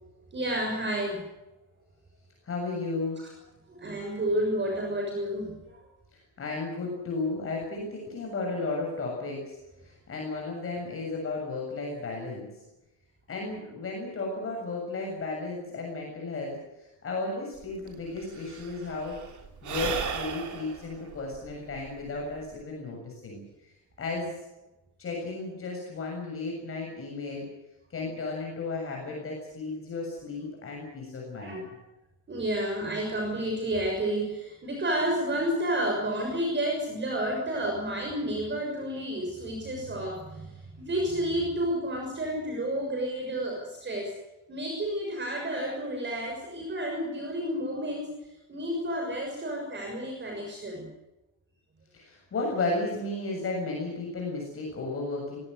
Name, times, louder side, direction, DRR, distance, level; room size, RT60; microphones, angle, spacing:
voice 1, 0.3-1.2 3.2-3.3 3.7-5.8 31.4-31.8 32.3-44.1 44.5-50.9, right 1 dB, 25° right, 1 dB, 6.4 m, -31 dB
voice 2, 2.4-3.2 6.1-9.6 9.8-12.6 13.3-19.2 19.6-23.4 24.0-24.4 25.0-27.5 27.9-31.7 51.9-55.4, left 3 dB, 30° left, -1 dB, 7.2 m, -34 dB
Sigh / Breathing, 17.6-17.7 17.9-22.6, right 7 dB, 45° right, 3.6 m, -36 dB
23.5 x 17.5 x 8.0 m, 0.97 s
cardioid pair, 160°, 43 cm